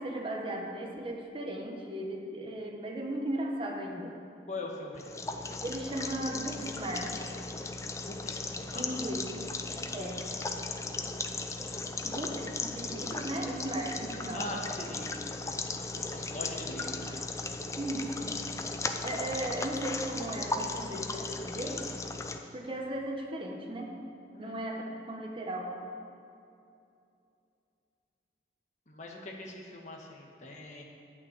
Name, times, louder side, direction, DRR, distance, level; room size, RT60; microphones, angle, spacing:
voice 1, 0.0-4.2 5.6-7.2 8.7-9.3 9.9-10.2 12.0-14.4 17.8-18.3 19.0-21.9 22.5-23.9 24.4-25.8, right 1 dB, 30° right, 0 dB, 1.1 m, -36 dB
voice 2, 4.5-5.0 8.1-8.9 14.3-15.1 15.4-17.2 24.3-24.7 28.9-30.8, left 2 dB, 40° left, -1 dB, 1.5 m, -42 dB
sound 1, 4.9-22.4, left 3 dB, 15° left, 0.5 m, -37 dB
11.0 x 6.0 x 8.8 m, 2.6 s
head